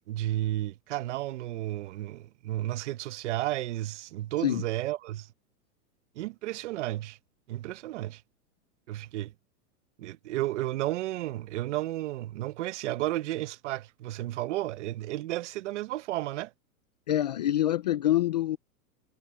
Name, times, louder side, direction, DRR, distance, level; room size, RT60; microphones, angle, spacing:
voice 1, 0.1-5.3 6.2-7.2 7.5-8.2 8.9-9.3 10.0-16.5, right 15 dB, 50° right, 1.0 m, -32 dB
voice 2, 17.1-18.6, left 12 dB, 30° left, 0.4 m, -26 dB
supercardioid pair, 160°, 46 cm